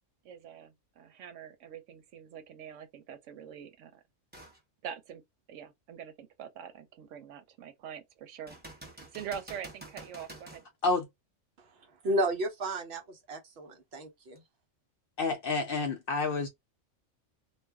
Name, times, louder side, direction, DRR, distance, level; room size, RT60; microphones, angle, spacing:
voice 1, 0.2-4.0 4.8-5.2 5.5-8.5 9.1-10.6, right 8 dB, 90° right, 1.0 m, -44 dB
sound 1, 4.3-4.6 5.2-5.3 8.5-10.7 14.4-14.5, right 1 dB, 10° right, 0.7 m, -48 dB
voice 2, 11.6-14.4, right 1 dB, 60° right, 1.0 m, -33 dB
voice 3, 15.2-16.5, left 3 dB, 60° left, 0.6 m, -29 dB
2.5 x 2.2 x 3.3 m
omnidirectional pair, 1.3 m